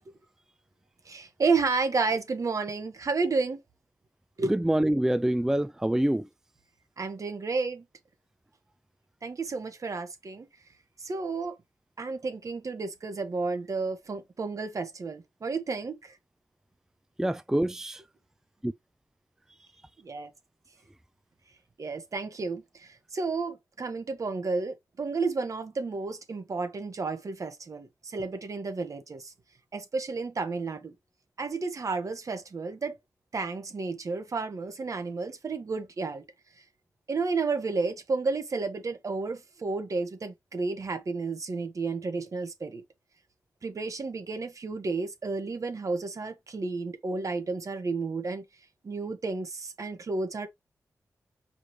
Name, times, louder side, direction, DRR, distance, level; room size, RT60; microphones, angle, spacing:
voice 1, 1.0-3.6 4.4-4.5 7.0-7.8 9.2-10.5 11.0-11.5 12.0-16.2 20.1-20.3 21.8-29.3 29.7-30.9 31.4-33.0 33.3-36.2 37.1-42.8 43.6-48.4 48.8-50.5, right 4 dB, 60° right, 1.3 m, -31 dB
voice 2, 4.5-6.3 17.2-18.0, right 1 dB, 10° right, 0.3 m, -25 dB
5.0 x 3.2 x 3.0 m
cardioid pair, 50°, 6 cm